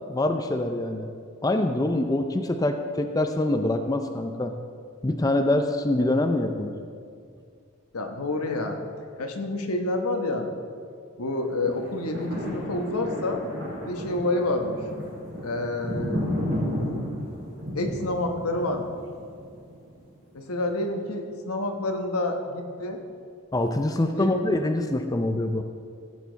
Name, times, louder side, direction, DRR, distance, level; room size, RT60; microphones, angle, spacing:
voice 1, 0.1-1.1 1.4-4.5 5.0-6.8 23.5-25.6, left 1 dB, 15° left, 6 dB, 0.4 m, -25 dB
voice 2, 7.9-8.8 9.2-10.5 11.2-13.4 13.8-14.8 15.4-16.3 17.7-18.9 20.3-23.0 24.1-24.4, left 2 dB, 90° left, 4 dB, 1.2 m, -28 dB
sound 1, 11.7-20.0 20.5-20.6, equal, 55° right, 3.3 m, -33 dB
15.5 x 8.4 x 4.0 m, 2.2 s
head